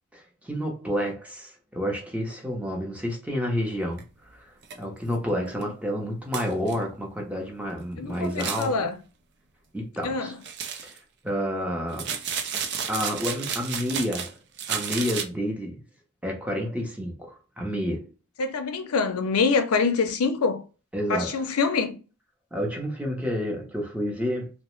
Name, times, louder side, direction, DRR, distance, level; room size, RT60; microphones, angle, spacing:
voice 1, 0.1-4.0 4.3-8.7 9.7-10.3 10.8-11.0 11.2-12.1 12.9-14.4 14.7-15.8 16.2-18.1 20.9-21.4 22.5-24.5, equal, 5° right, 0.7 m, -30 dB
sound 1, 4.0-4.1 4.6-4.8 5.1-5.2 5.6-5.7 6.3-6.8 8.2-8.7 10.4-11.0 11.9-14.3 14.6-15.2, right 7 dB, 55° right, 0.4 m, -32 dB
voice 2, 8.0-9.0 10.0-10.3 18.4-20.6 21.1-22.0, left 4 dB, 85° left, 0.6 m, -25 dB
2.9 x 2.1 x 3.0 m
head